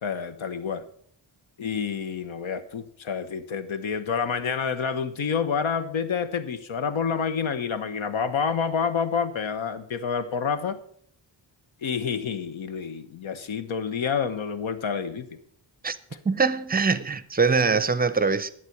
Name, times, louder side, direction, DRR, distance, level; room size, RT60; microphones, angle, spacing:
voice 1, 0.0-0.8 1.6-10.8 11.8-15.3, left 6 dB, 75° left, 1.1 m, -28 dB
voice 2, 16.2-18.5, right 4 dB, 20° right, 0.5 m, -23 dB
11.5 x 7.6 x 6.0 m
wide cardioid pair, 155°, 47 cm